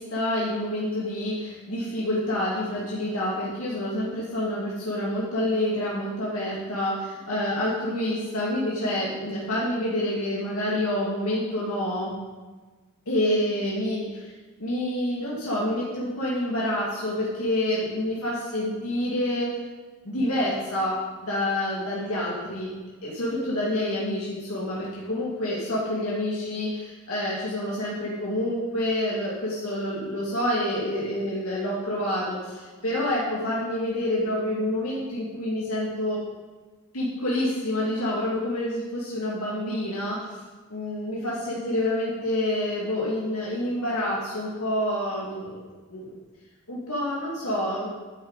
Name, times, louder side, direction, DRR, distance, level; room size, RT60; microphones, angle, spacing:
voice 1, 0.0-12.1 13.1-14.3 14.6-19.6 20.0-22.7 23.0-36.2 36.9-40.2 40.7-45.7 45.9-46.2 46.7-47.9, left 1 dB, 80° left, -6 dB, 2.2 m, -28 dB
10.5 x 8.8 x 4.1 m, 1.3 s
head